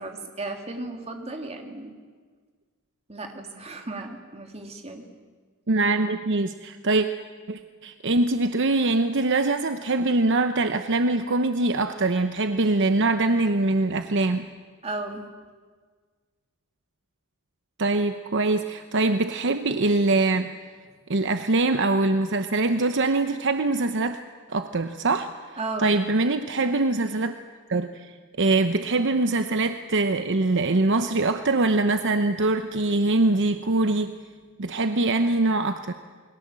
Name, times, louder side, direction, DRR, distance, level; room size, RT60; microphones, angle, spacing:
voice 1, 0.0-1.9 3.1-5.0 14.8-15.2 25.6-25.9, right 2 dB, 30° right, 3 dB, 3.0 m, -35 dB
voice 2, 5.7-7.1 7.5-14.5 17.8-20.5 21.1-24.2 24.5-27.3 27.7-28.1 28.4-34.2 34.6-35.9, right 2 dB, 60° right, 8 dB, 0.9 m, -23 dB
28.5 x 22.0 x 7.6 m, 1.5 s
head